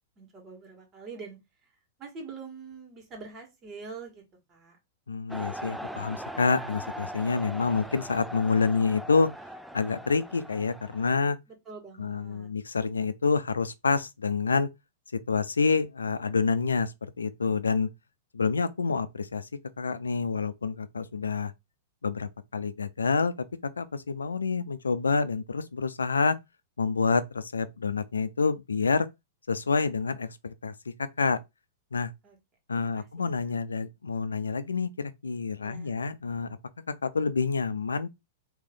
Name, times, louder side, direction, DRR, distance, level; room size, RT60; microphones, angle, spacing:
voice 1, 0.2-1.4 2.0-4.2 4.5-4.8 11.5-12.5 32.2-32.4 32.8-33.5 35.6-36.0, right 4 dB, 30° right, 1.9 m, -45 dB
voice 2, 5.1-9.3 9.7-11.4 12.0-14.7 15.3-17.9 18.3-19.5 19.8-21.5 22.0-23.5 23.8-26.4 26.8-29.1 29.5-30.7 31.0-31.4 31.9-32.1 32.7-36.5 37.0-38.1, left 4 dB, 90° left, 0.4 m, -27 dB
sound 1, 5.3-11.2, right 1 dB, ahead, 0.4 m, -40 dB
3.2 x 2.9 x 3.7 m
hypercardioid pair, 110°, 0 cm